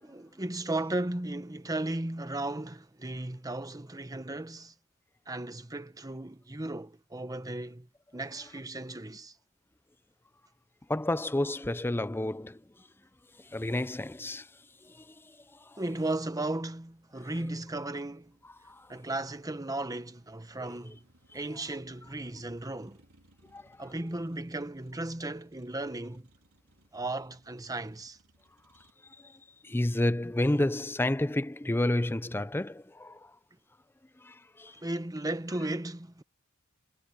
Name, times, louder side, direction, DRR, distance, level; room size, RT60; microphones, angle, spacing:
voice 1, 0.0-4.7 5.3-7.9 8.1-9.3 15.8-18.4 18.9-21.0 21.3-23.0 23.8-26.3 26.9-28.2 34.8-36.2, right 2 dB, 15° right, 1.1 m, -35 dB
voice 2, 10.9-12.6 13.4-14.5 14.8-15.4 15.7-15.8 18.6-18.9 23.5-23.8 29.2-29.3 29.6-33.3 34.2-34.8, left 1 dB, 10° left, 0.5 m, -30 dB
Motor vehicle (road), 14.9-28.9, right 1 dB, 70° right, 4.2 m, -66 dB
head